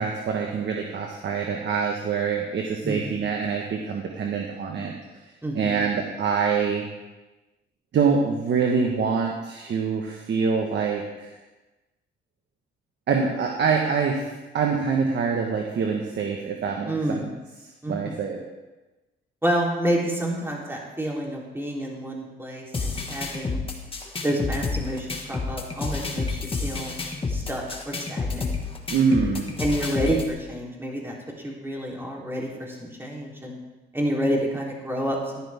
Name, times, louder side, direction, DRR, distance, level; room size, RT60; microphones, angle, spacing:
voice 1, 0.0-4.9 5.5-6.8 7.9-11.3 13.1-17.2 17.9-18.4 28.9-29.5, right 5 dB, 60° right, 1 dB, 1.4 m, -25 dB
voice 2, 5.4-5.8 16.9-17.3 17.8-18.2 19.4-23.6 24.2-27.0 27.3-28.5 29.6-33.6 33.9-35.5, right 1 dB, 10° right, -3 dB, 3.6 m, -29 dB
sound 1, 22.7-30.3, left 4 dB, 25° left, 1.9 m, -30 dB
13.5 x 11.0 x 3.6 m, 1.1 s
cardioid pair, 90°, 20 cm